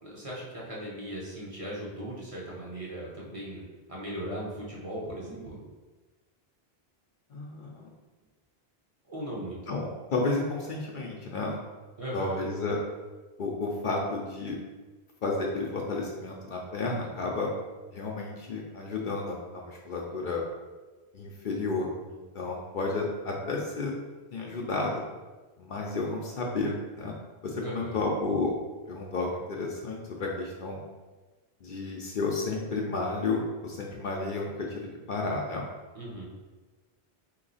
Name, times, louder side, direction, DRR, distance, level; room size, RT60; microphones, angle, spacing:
voice 1, 0.0-3.6 3.9-5.6 9.1-9.6 12.0-12.5 27.6-28.0 35.9-36.2, right 1 dB, 35° right, -5 dB, 0.9 m, -38 dB
voice 2, 7.3-7.9 9.7-11.6 12.1-12.8 13.4-14.5 15.2-17.5 17.9-20.4 21.1-23.9 24.3-25.0 25.6-27.1 27.4-28.5 28.9-30.8 31.6-35.7, left 3 dB, 55° left, -2 dB, 0.7 m, -32 dB
3.8 x 3.0 x 4.0 m, 1.3 s
omnidirectional pair, 1.1 m